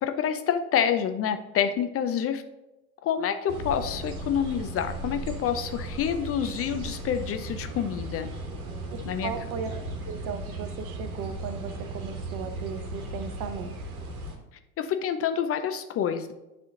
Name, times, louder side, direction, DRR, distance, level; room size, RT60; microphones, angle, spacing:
voice 1, 0.0-2.4 3.0-8.3 9.1-9.3 14.8-16.3, left 8 dB, 35° left, 8 dB, 0.5 m, -27 dB
sound 1, 3.5-14.4, right 2 dB, 80° right, 1.3 m, -36 dB
voice 2, 9.2-9.7 10.0-13.8, right 6 dB, 50° right, 9 dB, 0.8 m, -36 dB
9.2 x 3.5 x 3.8 m, 0.99 s
figure-of-eight pair, 70°, 43 cm